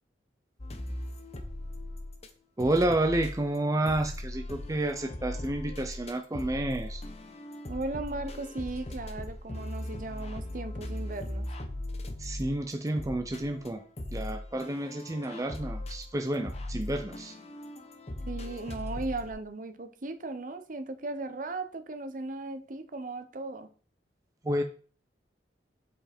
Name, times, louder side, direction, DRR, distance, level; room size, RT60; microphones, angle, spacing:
sound 1, 0.6-2.3 2.6-19.3, left 1 dB, 35° left, 0.9 m, -39 dB
voice 1, 2.6-7.0 12.2-13.8 14.1-17.4 24.4-24.6, right 1 dB, 20° right, 6 dB, 0.5 m, -30 dB
voice 2, 7.7-11.5 18.3-23.7, right 2 dB, 50° right, 9 dB, 0.8 m, -37 dB
7.7 x 5.1 x 4.3 m, 0.40 s
head